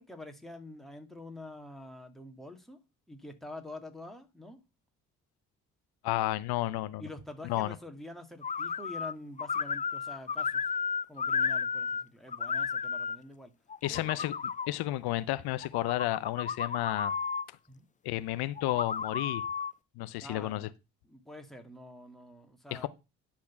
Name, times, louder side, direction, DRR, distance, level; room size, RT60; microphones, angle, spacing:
voice 1, 0.0-2.8 3.1-4.6 7.0-10.6 11.1-13.5 13.9-14.2 17.7-17.9 20.2-20.7 21.0-22.9, left 1 dB, ahead, 2.3 m, -46 dB
voice 2, 6.0-7.0 7.4-7.7 13.8-14.3 14.7-17.1 18.0-19.4 20.0-20.7 22.7-22.9, left 16 dB, 75° left, 0.7 m, -32 dB
sound 1, 8.4-9.1 9.4-12.0 12.3-13.2 13.7-14.7 15.6-17.4 18.6-19.7, left 6 dB, 20° left, 0.4 m, -33 dB
10.0 x 4.4 x 5.8 m
supercardioid pair, 55°, 38 cm